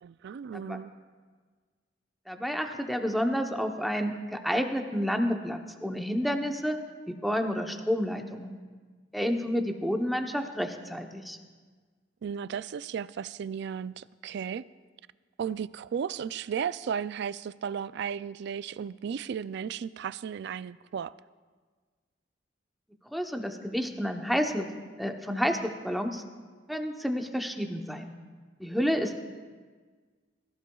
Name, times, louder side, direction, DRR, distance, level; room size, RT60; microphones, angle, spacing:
voice 1, 0.0-0.9 12.2-14.6 15.4-21.1, right 7 dB, 65° right, 17 dB, 0.3 m, -35 dB
voice 2, 2.3-6.8 7.1-8.6 9.1-11.4 23.1-24.7 25.0-26.2 26.7-28.1 28.6-29.2, equal, ahead, 4 dB, 0.8 m, -30 dB
22.0 x 15.0 x 2.3 m, 1.5 s
head